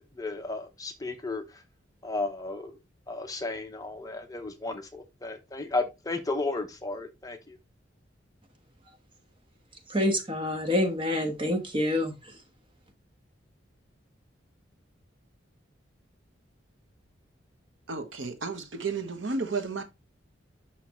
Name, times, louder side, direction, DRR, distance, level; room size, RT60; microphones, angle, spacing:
voice 1, 0.2-1.4 2.0-2.8 3.1-7.6, left 3 dB, 20° left, 0.8 m, -33 dB
voice 2, 9.9-12.1, left 1 dB, 25° right, 1.3 m, -27 dB
voice 3, 17.9-19.8, right 4 dB, 80° right, 1.1 m, -32 dB
5.9 x 5.7 x 3.1 m
head